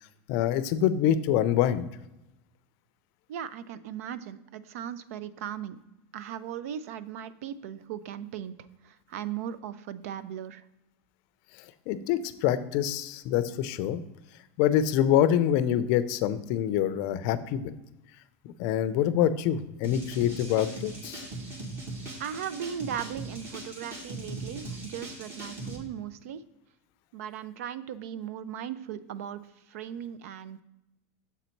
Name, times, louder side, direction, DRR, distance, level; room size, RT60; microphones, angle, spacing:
voice 1, 0.3-1.9 11.9-14.0 14.6-17.7 18.4-21.2, left 10 dB, 50° left, 13 dB, 0.5 m, -25 dB
voice 2, 3.3-5.8 6.1-8.5 8.8-10.6 22.2-26.4 27.1-30.6, right 9 dB, 75° right, 15 dB, 0.5 m, -38 dB
sound 1, 19.8-25.8, right 2 dB, 30° right, 1.4 m, -39 dB
7.1 x 4.0 x 4.5 m, 0.93 s
supercardioid pair, 150°, 8 cm